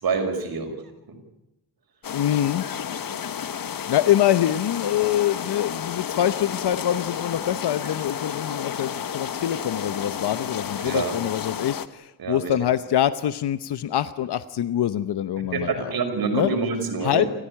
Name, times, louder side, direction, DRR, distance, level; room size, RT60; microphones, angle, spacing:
voice 1, 0.0-0.7 10.8-11.1 12.2-12.5 15.5-17.2, right 4 dB, 65° right, 5 dB, 5.9 m, -26 dB
sound 1, 2.0-11.9, left 8 dB, 60° left, 1.4 m, -32 dB
voice 2, 2.1-2.7 3.9-15.9 16.3-16.5 17.0-17.2, left 11 dB, 85° left, 13 dB, 1.0 m, -24 dB
28.5 x 15.0 x 10.0 m, 0.94 s
wide cardioid pair, 115°, 38 cm